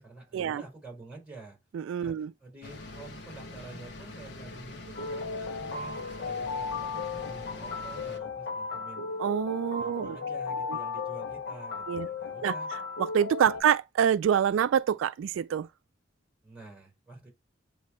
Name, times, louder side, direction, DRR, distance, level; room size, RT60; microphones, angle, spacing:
voice 1, 0.0-1.6 2.0-9.0 9.8-12.7 13.5-13.6 16.4-17.3, right 3 dB, 5° right, 4.2 m, -48 dB
voice 2, 1.7-2.3 9.2-10.2 11.9-12.1 12.4-12.5 13.0-15.7, right 8 dB, 90° right, 0.3 m, -26 dB
sound 1, 2.6-8.2, left 2 dB, 65° left, 1.0 m, -44 dB
sound 2, 4.9-13.6, left 4 dB, 90° left, 1.2 m, -35 dB
8.4 x 2.8 x 4.3 m
head